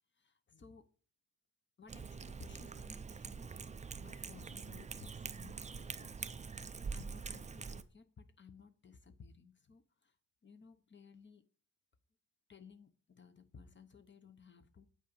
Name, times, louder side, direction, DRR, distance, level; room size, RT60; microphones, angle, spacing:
voice 1, 0.2-0.9 1.8-3.6 4.0-10.1 10.4-11.4 12.5-14.9, left 5 dB, 30° left, 0.8 m, -58 dB
Cat, 1.9-7.8, right 5 dB, 20° right, 0.3 m, -45 dB
8.4 x 5.0 x 5.4 m
wide cardioid pair, 145°, 38 cm